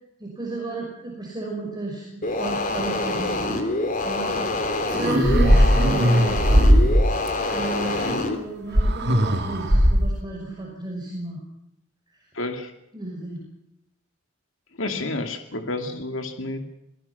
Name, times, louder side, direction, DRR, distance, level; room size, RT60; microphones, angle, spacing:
voice 1, 0.2-3.6 4.0-6.7 7.5-11.4 12.9-13.5, right 2 dB, 20° right, -2 dB, 5.9 m, -33 dB
sound 1, 2.2-8.4, left 2 dB, 45° left, 3.4 m, -26 dB
sound 2, 4.9-7.3 8.7-10.2, equal, 60° right, 3.2 m, -18 dB
voice 2, 12.3-12.7 14.8-16.7, left 2 dB, 70° left, 5 dB, 2.7 m, -30 dB
27.0 x 19.0 x 5.9 m, 0.84 s
head